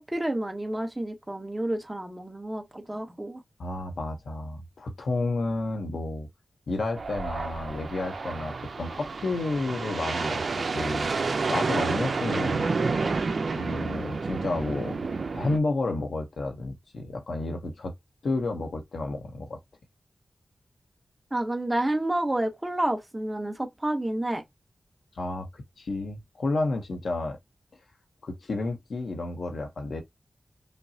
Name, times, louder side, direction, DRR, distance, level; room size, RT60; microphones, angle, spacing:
voice 1, 0.1-3.4 21.3-24.4, right 1 dB, 20° right, 1.0 m, -29 dB
voice 2, 3.6-6.3 6.7-12.7 13.6-15.0 15.3-17.9 18.2-19.6 25.1-27.4 28.2-30.0, left 2 dB, 85° left, 0.9 m, -31 dB
sound 1, 7.0-15.6, right 4 dB, 70° right, 0.6 m, -30 dB
5.2 x 2.0 x 2.8 m
wide cardioid pair, 85°, 0 cm